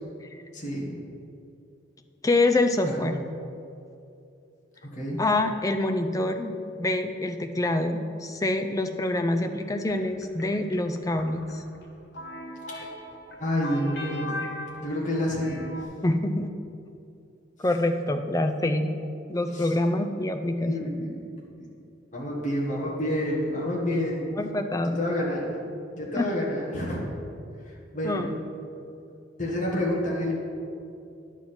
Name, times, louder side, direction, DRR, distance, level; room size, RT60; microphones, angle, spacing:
voice 1, 0.5-1.0 2.9-3.1 4.8-5.2 12.7-12.9 13.4-14.4 14.8-15.7 19.5-19.7 20.6-21.3 22.1-24.3 24.8-25.6 25.9-27.0 27.6-28.3 29.4-30.3, left 1 dB, 40° left, -4 dB, 1.5 m, -29 dB
voice 2, 2.2-3.2 5.2-11.6 16.0-16.5 17.6-18.9 19.3-20.9 24.4-24.9 26.2-26.3 28.0-28.3, left 2 dB, 15° left, 6 dB, 0.4 m, -26 dB
sound 1, 9.4-15.8, left 1 dB, 60° left, 1.1 m, -39 dB
10.5 x 7.4 x 4.3 m, 2.7 s
head